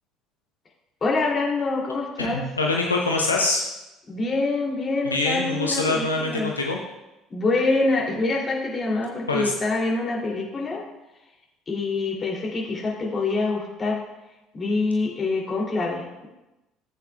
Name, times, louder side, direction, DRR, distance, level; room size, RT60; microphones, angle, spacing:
voice 1, 1.0-2.4 4.1-6.5 7.3-10.8 11.7-14.0 14.5-16.3, left 3 dB, 30° left, -2 dB, 3.1 m, -25 dB
voice 2, 2.2-3.6 5.0-6.8 9.3-9.5, left 3 dB, 85° left, 0 dB, 0.7 m, -24 dB
14.0 x 8.2 x 2.4 m, 0.99 s
figure-of-eight pair, 55°, 0 cm